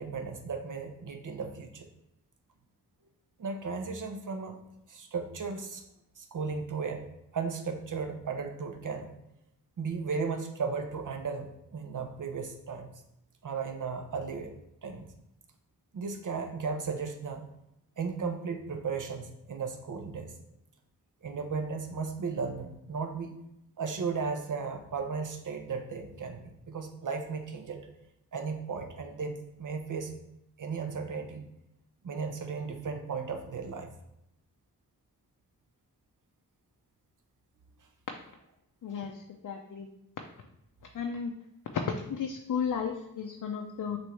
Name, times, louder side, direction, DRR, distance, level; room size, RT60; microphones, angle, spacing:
voice 1, 0.0-1.9 3.4-4.6 4.9-5.8 6.2-7.1 7.3-9.1 9.8-12.9 13.4-14.5 14.8-15.1 15.9-17.5 18.0-20.3 21.2-23.3 23.8-27.9 28.3-30.1 30.6-31.4 32.0-33.9, right 5 dB, 55° right, 6 dB, 0.7 m, -35 dB
voice 2, 38.8-39.9 40.8-41.3 41.7-44.0, left 6 dB, 60° left, 3 dB, 0.5 m, -34 dB
6.1 x 2.6 x 3.2 m, 0.83 s
cardioid pair, 55°, 37 cm